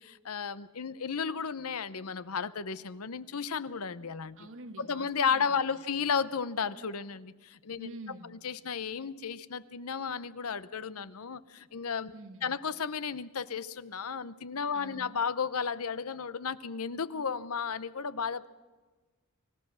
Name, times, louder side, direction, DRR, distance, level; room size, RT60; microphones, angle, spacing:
voice 1, 0.0-4.5 4.8-7.9 8.3-12.2 12.4-18.5, left 6 dB, 80° left, 16 dB, 0.8 m, -33 dB
voice 2, 4.4-6.1 7.8-8.3 12.1-12.6 14.7-15.1, right 2 dB, 65° right, 7 dB, 1.6 m, -47 dB
25.0 x 16.0 x 6.3 m, 1.3 s
head